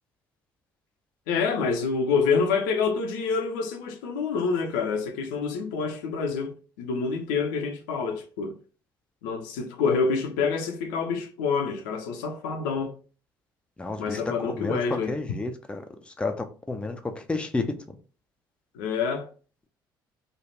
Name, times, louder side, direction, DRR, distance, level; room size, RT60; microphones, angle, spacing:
voice 1, 1.3-8.6 9.2-12.9 14.0-15.1 18.7-19.3, left 5 dB, 65° left, 0.5 m, -27 dB
voice 2, 13.8-14.8 15.1-15.8 16.2-17.7, left 3 dB, 10° left, 0.5 m, -31 dB
3.2 x 2.4 x 4.0 m
figure-of-eight pair, 55°, 11 cm